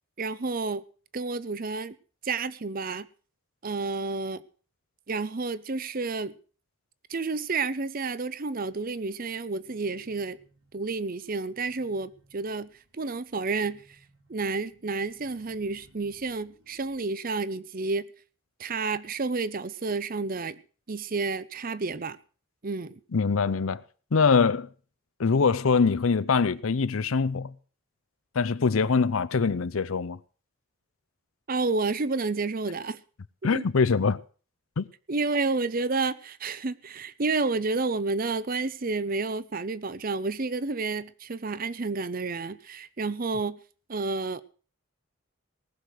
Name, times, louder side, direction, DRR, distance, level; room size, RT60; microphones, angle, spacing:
voice 1, 0.2-0.8 1.1-2.0 2.2-3.1 3.6-4.4 5.1-6.4 7.1-10.4 10.7-13.8 14.3-18.1 18.6-20.6 20.9-22.2 22.6-23.0 31.5-33.0 33.4-33.6 35.1-43.6 43.9-44.4, right 3 dB, 45° right, 0.7 m, -30 dB
sound 1, 8.6-17.0, right 1 dB, 75° right, 6.1 m, -62 dB
voice 2, 23.1-23.8 24.1-24.7 25.2-27.5 28.3-30.2 33.4-34.2 34.8-34.9, left 5 dB, 80° left, 0.6 m, -23 dB
19.0 x 6.6 x 7.8 m
head